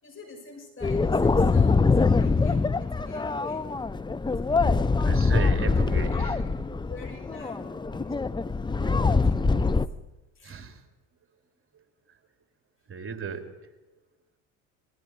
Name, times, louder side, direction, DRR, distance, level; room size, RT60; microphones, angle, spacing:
voice 1, 0.0-3.7 4.5-4.9 5.6-6.6 6.9-8.2 8.8-9.9 10.3-10.6, left 4 dB, 30° left, 2 dB, 6.4 m, -46 dB
sound 1, 0.8-9.9, left 4 dB, 10° left, 0.7 m, -24 dB
voice 2, 5.0-6.4 10.4-10.8 11.7-11.8 12.9-13.5 13.9-14.0, right 5 dB, 30° right, 5 dB, 3.5 m, -35 dB
29.5 x 20.5 x 4.8 m, 1.0 s
hypercardioid pair, 75°, 40 cm